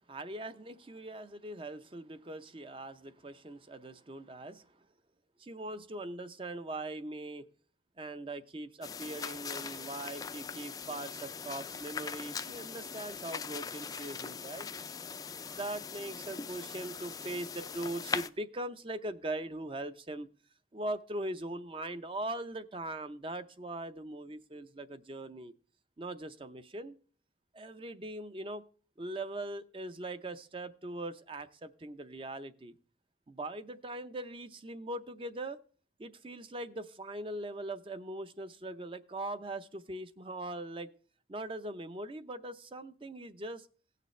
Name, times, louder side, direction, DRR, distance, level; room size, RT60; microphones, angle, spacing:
voice 1, 0.1-4.9 5.4-7.5 8.0-14.7 15.5-20.3 20.7-25.5 26.0-26.9 27.5-28.6 29.0-32.8 33.3-35.6 36.0-40.9 41.3-43.7, right 1 dB, 30° right, 0.6 m, -41 dB
sound 1, 8.8-18.3, left 5 dB, 20° left, 0.3 m, -41 dB
17.5 x 6.7 x 3.1 m
head